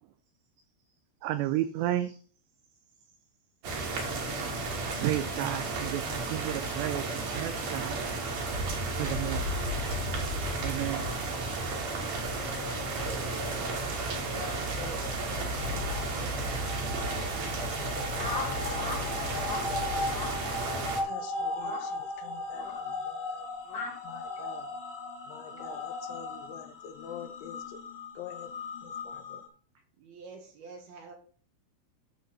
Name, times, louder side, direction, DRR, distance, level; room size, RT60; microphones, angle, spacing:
voice 1, 1.2-2.2 5.0-8.0 9.0-9.5 10.6-11.0, right 13 dB, 85° right, 11 dB, 2.5 m, -32 dB
sound 1, 3.6-21.0, right 2 dB, 50° right, 3.0 m, -33 dB
sound 2, 11.1-29.5, left 2 dB, 65° left, 1.5 m, -39 dB
voice 2, 14.3-16.7 17.4-19.9 20.5-23.4 24.0-24.7 25.3-27.8 28.2-28.5 28.8-29.4, left 8 dB, 80° left, 7 dB, 3.1 m, -47 dB
sound 3, 18.2-19.0 19.3-19.6 20.1-20.4 20.7-21.0 21.6-21.8 22.6-22.8 23.7-23.9, left 3 dB, 35° left, 2.1 m, -37 dB
voice 3, 25.4-25.9 26.1-26.7 30.0-31.1, right 4 dB, 65° right, 3 dB, 2.8 m, -50 dB
10.5 x 3.9 x 6.9 m, 0.43 s
omnidirectional pair, 5.7 m